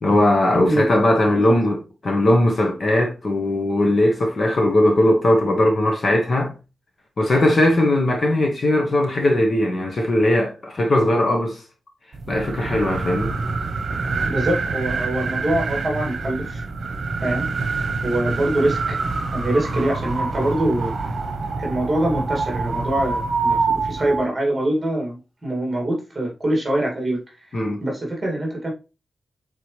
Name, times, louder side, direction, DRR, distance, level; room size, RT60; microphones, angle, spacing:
voice 1, 0.0-6.5 7.2-11.6 12.3-13.3 27.5-27.8, left 1 dB, 40° left, 1.2 m, -19 dB
sound 1, 12.1-24.3, right 4 dB, 55° right, 1.1 m, -26 dB
voice 2, 14.3-16.7 17.2-17.5 17.8-19.0 19.3-21.0 21.6-27.2 27.8-28.7, right 1 dB, 20° right, 2.5 m, -24 dB
7.8 x 3.9 x 3.3 m
wide cardioid pair, 165°, 0 cm